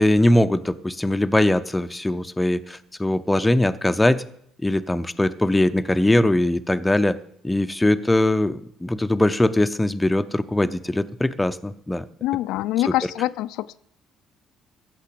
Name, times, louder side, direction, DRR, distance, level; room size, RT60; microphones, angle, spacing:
voice 1, 0.0-4.2 4.6-7.2 7.4-12.0 12.8-13.1, left 1 dB, 5° left, 11 dB, 0.5 m, -21 dB
voice 2, 12.2-13.8, left 15 dB, 90° left, 14 dB, 0.5 m, -25 dB
14.5 x 6.7 x 8.4 m, 0.67 s
cardioid pair, 165°, 0 cm